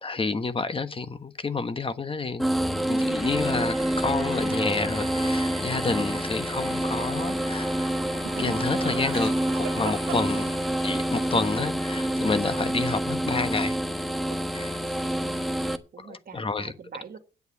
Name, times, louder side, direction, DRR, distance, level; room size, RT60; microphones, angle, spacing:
voice 1, 0.0-2.5 2.9-7.9 8.4-10.4 10.8-13.8 14.5-14.8 16.0-16.7, left 4 dB, 25° left, 1.3 m, -29 dB
sound 1, 2.4-15.8, equal, ahead, 1.3 m, -27 dB
sound 2, 3.1-11.6, right 3 dB, 30° right, 2.2 m, -45 dB
Laughter, 8.2-10.9 13.7-14.5 14.8-15.4, right 12 dB, 85° right, 1.5 m, -39 dB
voice 2, 10.1-10.5 15.0-17.2, right 6 dB, 50° right, 2.2 m, -45 dB
9.4 x 8.1 x 7.9 m
cardioid pair, 90°, 20 cm